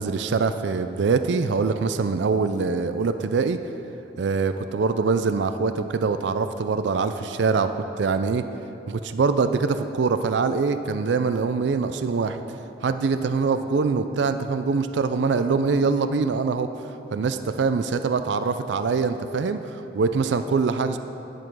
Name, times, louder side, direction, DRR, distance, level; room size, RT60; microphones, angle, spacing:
voice 1, 0.0-3.6 4.2-8.4 8.9-12.4 12.8-16.7 17.1-21.0, right 4 dB, 70° right, 10 dB, 0.4 m, -24 dB
10.0 x 7.5 x 6.2 m, 3.0 s
head